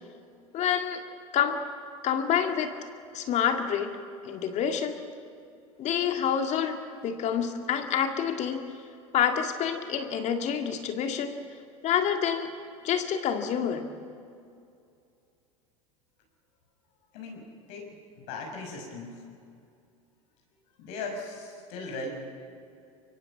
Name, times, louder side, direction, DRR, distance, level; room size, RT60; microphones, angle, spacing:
voice 1, 0.5-1.0 1.3-1.6 2.0-2.7 3.1-3.9 4.2-5.0 5.8-8.6 9.1-11.4 11.8-12.5 12.8-13.9, left 8 dB, 40° left, 6 dB, 2.3 m, -27 dB
voice 2, 17.1-17.9 18.2-19.1 20.8-22.1, left 3 dB, 60° left, 1 dB, 5.9 m, -38 dB
24.5 x 24.0 x 7.3 m, 2.4 s
hypercardioid pair, 85°, 17 cm